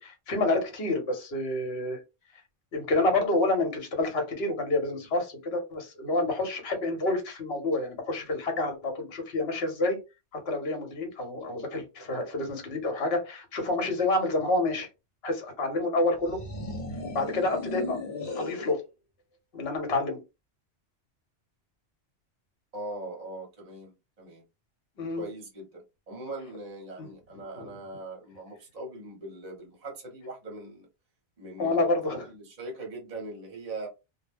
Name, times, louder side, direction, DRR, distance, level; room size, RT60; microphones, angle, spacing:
voice 1, 0.0-2.0 2.7-10.0 10.5-14.9 15.2-16.4 17.1-18.0 18.4-18.8 19.5-20.2 25.0-25.2 27.0-27.1 27.6-27.7 31.6-32.3, left 2 dB, 60° left, 1.1 m, -28 dB
sound 1, 16.2-18.8, left 2 dB, 45° left, 0.7 m, -36 dB
voice 2, 22.7-24.4 25.2-30.9 31.4-31.8 32.2-33.9, right 2 dB, 40° right, 0.8 m, -41 dB
2.2 x 2.1 x 3.3 m
omnidirectional pair, 1.2 m